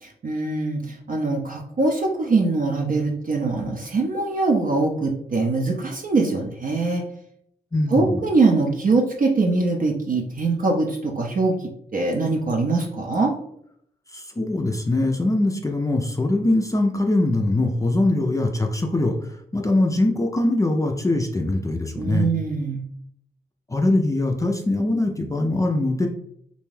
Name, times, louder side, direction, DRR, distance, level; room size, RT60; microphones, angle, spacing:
voice 1, 0.0-7.0 7.9-11.5 11.9-13.3 22.0-22.8, right 3 dB, 55° right, 0 dB, 0.5 m, -22 dB
voice 2, 7.7-8.2 14.1-22.3 23.7-26.1, left 2 dB, 20° left, 2 dB, 0.4 m, -22 dB
2.5 x 2.2 x 3.1 m, 0.71 s
cardioid pair, 60°, 17 cm